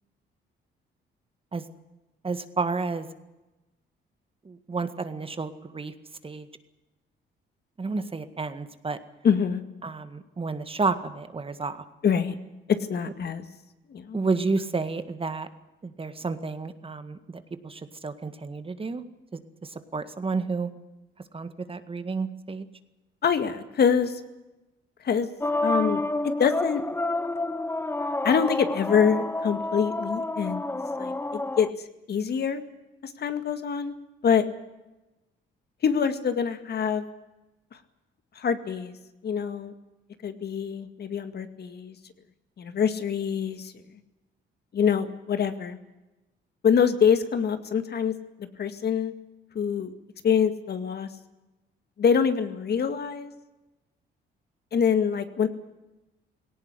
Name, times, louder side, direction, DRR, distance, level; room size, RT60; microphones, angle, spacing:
voice 1, 2.2-3.1 4.4-5.9 6.2-6.5 7.8-9.0 9.8-11.8 14.1-15.5 15.8-19.0 19.3-20.7 21.3-22.7, right 4 dB, 25° right, 10 dB, 1.9 m, -31 dB
voice 2, 9.2-9.6 12.0-12.3 12.9-13.5 13.9-14.2 23.2-24.2 25.0-25.3 25.6-26.8 28.2-30.7 31.0-31.7 32.1-32.6 33.0-34.0 34.2-34.4 35.8-37.0 38.4-39.0 39.2-39.7 40.2-42.0 42.6-43.7 44.7-45.8 46.6-48.2 48.6-49.1 49.5-49.9 50.2-51.1 52.0-53.3 54.7-55.5, left 7 dB, 55° left, 9 dB, 2.1 m, -25 dB
sound 1, 25.4-31.7, left 2 dB, 10° left, 1.0 m, -29 dB
18.5 x 18.0 x 9.9 m, 1.0 s
cardioid pair, 90°, 20 cm